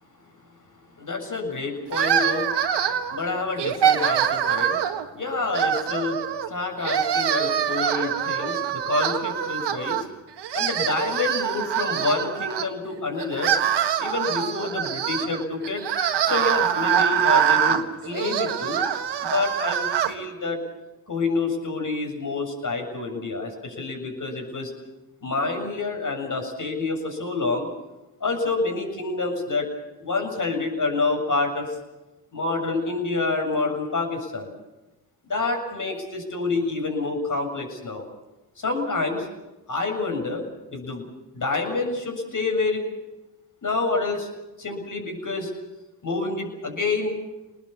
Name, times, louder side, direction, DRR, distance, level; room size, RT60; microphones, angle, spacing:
voice 1, 1.0-2.5 3.1-4.8 5.1-10.0 10.5-13.5 14.0-15.8 16.2-18.8 19.2-20.6 21.1-24.7 25.2-27.7 28.2-29.7 30.0-31.7 32.3-34.5 35.2-38.1 38.6-39.3 39.7-40.4 40.7-41.1 41.3-42.8 43.6-44.3 44.6-45.5 46.0-47.1, left 3 dB, 40° left, 4 dB, 7.5 m, -27 dB
sound 1, 1.9-3.2 3.6-5.1 5.5-6.5 6.8-10.1 10.4-12.7 13.2-20.1, right 9 dB, 60° right, 1.8 m, -24 dB
27.5 x 20.0 x 7.2 m, 1.0 s
hypercardioid pair, 45°, 45 cm